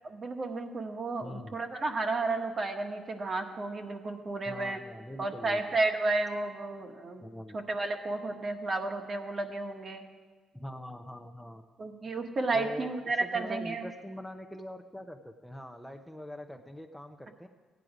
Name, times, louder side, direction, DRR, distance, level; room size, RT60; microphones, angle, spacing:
voice 1, 0.0-4.8 5.2-7.2 7.5-10.0 11.8-13.8, right 3 dB, 40° right, 4 dB, 1.4 m, -32 dB
voice 2, 1.2-1.6 4.5-5.6 7.2-7.6 10.5-11.6 12.5-13.0 13.2-17.5, left 1 dB, 5° left, 4 dB, 0.8 m, -43 dB
15.0 x 9.4 x 5.0 m, 1.4 s
cardioid pair, 90°, 0 cm